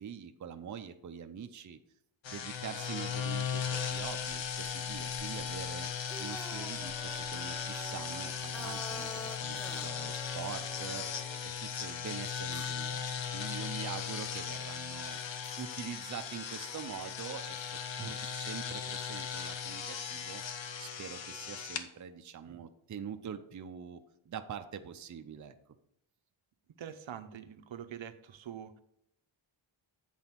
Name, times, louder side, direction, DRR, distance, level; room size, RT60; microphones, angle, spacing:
voice 1, 0.0-1.8 2.3-15.2 15.6-20.4 20.8-24.0 24.3-25.7, right 8 dB, 40° right, 7 dB, 0.5 m, -44 dB
sound 1, 2.2-21.9, left 7 dB, 65° left, 0.8 m, -38 dB
sound 2, 5.9-11.4, equal, ahead, 0.6 m, -47 dB
sound 3, 9.4-18.4, left 2 dB, 45° left, 1.6 m, -62 dB
voice 2, 26.8-28.8, right 9 dB, 70° right, 10 dB, 0.7 m, -45 dB
7.9 x 4.1 x 5.7 m, 0.77 s
wide cardioid pair, 160°, 49 cm